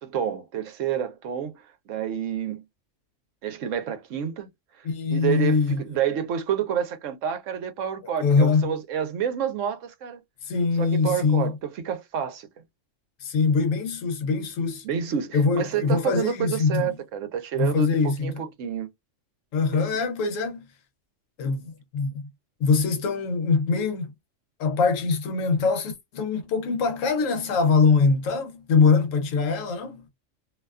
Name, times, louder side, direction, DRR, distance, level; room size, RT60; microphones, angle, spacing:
voice 1, 0.0-1.5 1.9-2.6 3.4-4.5 4.8-10.2 10.8-12.5 14.8-18.9 19.7-19.8, right 8 dB, 75° right, 1.0 m, -29 dB
voice 2, 4.8-5.8 8.2-8.7 10.4-11.5 13.2-14.8 15.3-16.9 17.5-18.3 19.5-20.6 21.4-22.3 22.6-24.1 24.6-30.0, left 4 dB, 80° left, 1.0 m, -23 dB
2.6 x 2.3 x 2.2 m
omnidirectional pair, 1.4 m